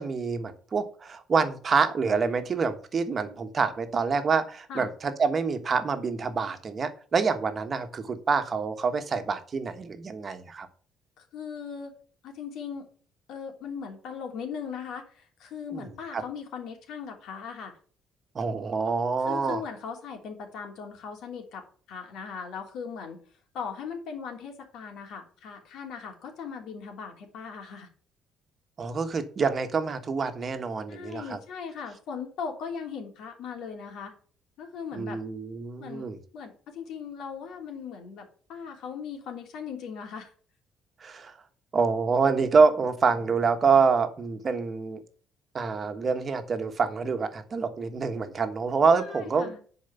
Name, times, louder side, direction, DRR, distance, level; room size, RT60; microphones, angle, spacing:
voice 1, 0.0-10.7 15.7-15.9 16.1-16.2 18.3-19.6 28.8-31.4 34.9-36.2 41.0-41.4 41.7-45.0 45.5-49.6, right 5 dB, 30° right, 8 dB, 1.3 m, -26 dB
voice 2, 11.2-11.9 12.2-12.9 13.3-17.8 19.3-23.2 23.5-27.9 30.9-34.1 34.6-35.2 35.8-36.1 36.3-38.2 38.5-40.3 48.9-49.6, left 6 dB, 70° left, 3 dB, 3.1 m, -38 dB
10.5 x 4.9 x 6.9 m, 0.43 s
cardioid pair, 140°, 0 cm